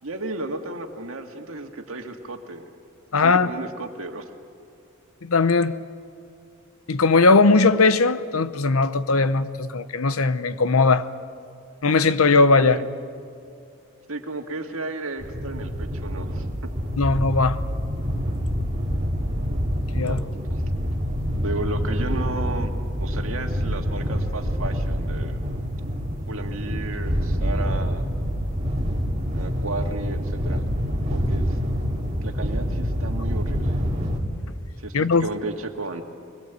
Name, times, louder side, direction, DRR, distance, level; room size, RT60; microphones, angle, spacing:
voice 1, 0.0-2.6 3.2-4.3 12.6-12.9 14.1-16.7 20.0-20.2 21.4-22.7 23.0-25.4 26.3-28.0 29.3-30.7 31.1-31.6 32.2-33.8 34.8-36.0, right 2 dB, 75° right, 2.0 m, -33 dB
voice 2, 3.1-3.5 5.2-5.7 6.9-11.1 11.8-12.8 17.0-17.6 19.9-20.2 34.9-35.3, left 3 dB, 90° left, 0.9 m, -19 dB
sound 1, 15.2-34.2, equal, 35° right, 2.6 m, -26 dB
23.5 x 21.0 x 8.2 m
head